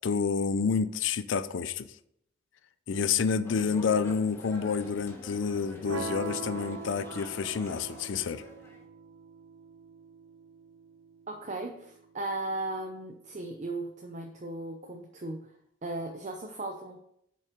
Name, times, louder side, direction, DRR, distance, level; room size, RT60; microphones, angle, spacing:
voice 1, 0.0-1.9 2.9-8.4, left 5 dB, 65° left, 13 dB, 0.5 m, -29 dB
sound 1, 3.4-8.8, equal, 15° left, 1.3 m, -47 dB
sound 2, 5.8-11.9, right 4 dB, 80° right, 0.8 m, -42 dB
voice 2, 11.3-15.5 15.8-17.0, right 2 dB, 35° right, 3 dB, 0.7 m, -37 dB
7.1 x 5.5 x 5.1 m, 0.75 s
head